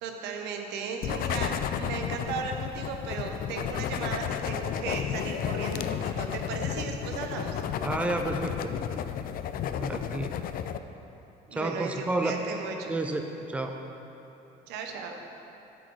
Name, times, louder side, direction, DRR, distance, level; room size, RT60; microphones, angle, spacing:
voice 1, 0.0-7.6 11.5-12.9 14.7-15.2, right 5 dB, 90° right, 3 dB, 0.9 m, -36 dB
sound 1, 1.0-10.8, left 9 dB, 60° left, 0.4 m, -32 dB
voice 2, 7.8-8.8 9.8-10.4 11.5-12.4 12.9-13.8, right 2 dB, 5° right, 4 dB, 0.5 m, -31 dB
8.1 x 6.4 x 4.7 m, 3.0 s
cardioid pair, 110°, 17 cm